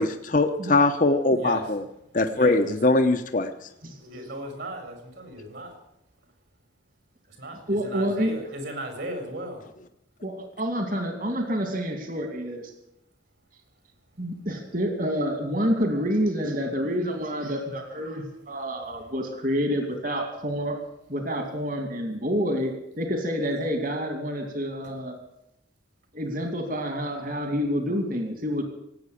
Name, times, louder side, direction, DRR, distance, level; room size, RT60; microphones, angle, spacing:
voice 1, 0.0-1.8 2.1-3.5, left 2 dB, 45° left, 7 dB, 0.9 m, -21 dB
voice 2, 1.4-1.7 2.3-2.8 3.9-5.8 7.4-9.6, right 1 dB, 65° right, 5 dB, 4.3 m, -36 dB
voice 3, 7.7-8.3 10.2-12.7 14.2-20.8 21.1-25.1 26.1-28.6, equal, 45° right, 5 dB, 2.6 m, -28 dB
18.0 x 8.8 x 8.4 m, 0.80 s
head